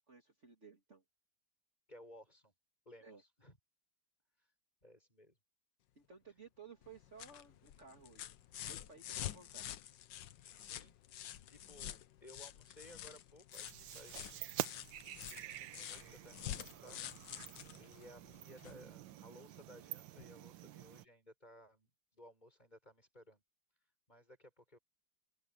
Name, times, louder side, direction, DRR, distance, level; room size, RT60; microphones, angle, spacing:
voice 1, 0.1-1.0 3.0-3.2 6.0-8.3 8.7-9.7, right 5 dB, 40° right, 2.8 m, -57 dB
voice 2, 1.9-2.5 2.8-3.6 4.8-5.4 10.5-11.0 11.5-14.6 15.1-17.0 17.3-23.4 24.1-24.8, left 1 dB, 20° left, 6.7 m, -59 dB
sound 1, 6.8-18.9 20.2-20.3, left 11 dB, 80° left, 1.5 m, -48 dB
sound 2, 13.5-21.1, right 13 dB, 85° right, 1.5 m, -48 dB
omnidirectional pair, 2.0 m